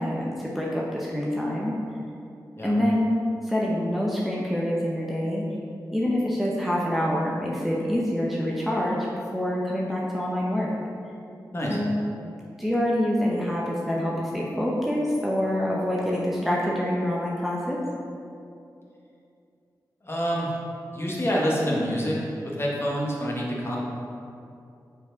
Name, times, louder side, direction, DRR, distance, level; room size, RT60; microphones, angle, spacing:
voice 1, 0.0-1.8 2.6-3.1 3.4-5.5 5.9-9.1 9.3-10.7 11.7-12.0 12.6-17.8, equal, ahead, -5 dB, 0.8 m, -26 dB
voice 2, 20.0-20.5 20.9-23.8, equal, 35° left, -4 dB, 1.3 m, -27 dB
5.7 x 4.6 x 3.9 m, 2.6 s
wide cardioid pair, 70°, 7 cm